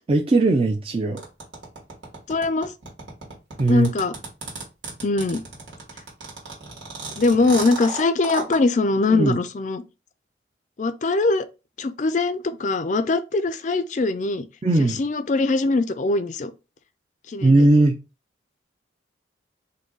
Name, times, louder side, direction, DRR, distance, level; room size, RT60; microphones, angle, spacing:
voice 1, 0.1-1.2 3.6-3.9 9.1-9.4 14.6-15.0 17.4-18.0, right 2 dB, 30° right, 0.4 m, -18 dB
sound 1, 1.2-8.6, right 3 dB, 80° right, 1.5 m, -34 dB
voice 2, 2.3-2.7 3.7-4.1 5.0-5.4 7.2-9.8 10.8-11.5 11.8-14.4 15.0-16.5 17.3-17.7, left 3 dB, 40° left, 0.4 m, -22 dB
3.9 x 2.6 x 3.7 m
head